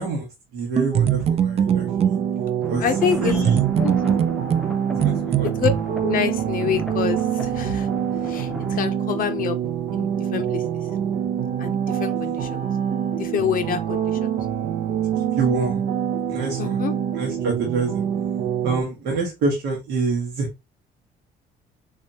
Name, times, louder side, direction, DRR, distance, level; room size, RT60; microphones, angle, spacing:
voice 1, 0.0-2.1 2.7-2.8 3.2-3.6 5.0-5.5 15.4-15.8 16.3-16.8 17.1-18.0 18.6-20.5, right 3 dB, 80° right, 1.2 m, -26 dB
sound 1, 0.8-2.2 3.4-5.8, right 9 dB, 35° right, 0.4 m, -21 dB
sound 2, 1.6-18.8, right 9 dB, 65° right, 0.7 m, -26 dB
sound 3, 2.6-8.9, equal, ahead, 0.6 m, -37 dB
voice 2, 2.8-3.4 3.8-3.9 5.4-5.7 6.0-7.9 8.2-9.6 9.9-10.6 11.6-12.6 13.1-14.2 16.6-17.0, left 8 dB, 55° left, 0.5 m, -26 dB
3.5 x 3.3 x 2.7 m
cardioid pair, 110°, 17 cm